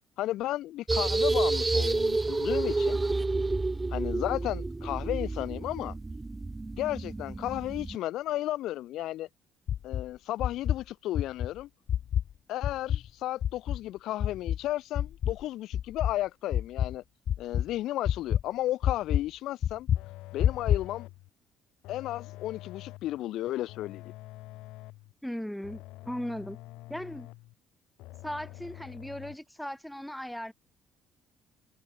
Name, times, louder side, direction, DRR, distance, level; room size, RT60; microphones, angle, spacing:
voice 1, 0.2-3.0 3.9-5.9 6.8-9.3 9.8-11.7 12.5-17.0 17.4-19.9 20.3-21.1 21.9-24.1, left 14 dB, 75° left, 4.7 m, -33 dB
sound 1, 0.9-8.0, right 3 dB, 15° right, 2.4 m, -29 dB
sound 2, 9.7-10.1 10.4-10.8 11.1-11.5 11.9-12.3 12.6-13.1 13.4-13.8 14.2-14.6 15.0-15.4 15.7-16.1 16.5-17.0 17.3-17.7 18.0-18.4 18.8-19.2 19.6-20.0 20.4-20.9, left 10 dB, 55° left, 3.4 m, -27 dB
sound 3, 20.0-21.3 21.8-23.2 23.7-25.1 25.6-27.5 28.0-29.4, left 18 dB, 90° left, 4.5 m, -46 dB
voice 2, 25.2-26.6 26.9-27.3 28.2-30.5, equal, ahead, 5.4 m, -37 dB
cardioid pair, 125°, 0 cm